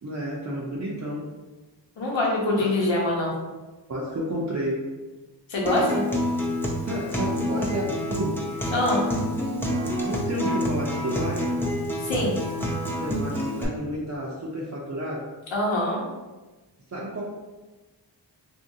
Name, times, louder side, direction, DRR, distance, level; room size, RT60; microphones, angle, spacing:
voice 1, 0.0-1.3 2.6-2.7 3.9-4.9 6.9-8.5 10.1-11.5 13.0-15.2 16.9-17.2, right 1 dB, 40° right, -5 dB, 0.6 m, -31 dB
voice 2, 2.0-3.3 5.5-6.0 8.7-9.0 12.0-12.4 15.5-16.0, left 1 dB, 90° left, -3 dB, 0.9 m, -24 dB
Acoustic guitar, 5.7-13.6, equal, 5° left, 0.5 m, -28 dB
2.8 x 2.6 x 2.7 m, 1.2 s
wide cardioid pair, 60°, 45 cm